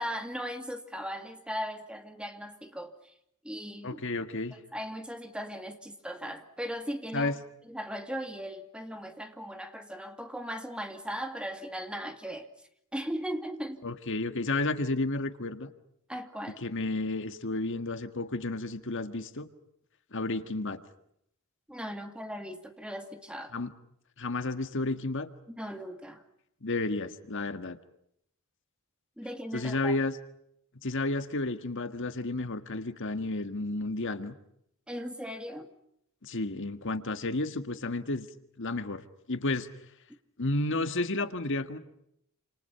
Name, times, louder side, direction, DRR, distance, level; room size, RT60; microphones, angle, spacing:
voice 1, 0.0-3.1 3.4-4.0 4.5-7.3 7.7-12.5 12.9-13.8 16.1-16.6 21.7-23.5 25.5-26.2 29.2-30.0 34.9-35.7, equal, 5° right, 2.4 m, -38 dB
voice 2, 3.8-4.6 7.1-7.3 13.8-15.7 16.6-19.5 20.1-20.8 23.5-23.7 24.2-25.3 26.6-27.8 29.5-30.1 30.8-34.3 36.2-38.3 38.6-39.0 39.3-39.7 40.4-41.8, left 2 dB, 60° left, 1.7 m, -31 dB
29.0 x 28.0 x 5.7 m
head